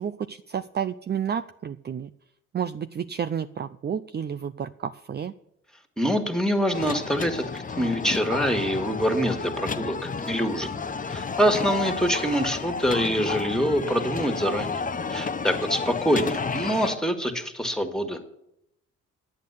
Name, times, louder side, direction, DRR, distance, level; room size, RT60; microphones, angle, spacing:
voice 1, 0.0-2.1 2.5-5.3, right 8 dB, 35° right, 11 dB, 0.5 m, -31 dB
voice 2, 6.0-10.7 11.1-14.8 15.1-18.2, equal, ahead, 6 dB, 2.1 m, -25 dB
sound 1, 6.7-17.0, left 4 dB, 25° left, 0.8 m, -31 dB
11.5 x 8.6 x 8.3 m, 0.80 s
cardioid pair, 90°, 30 cm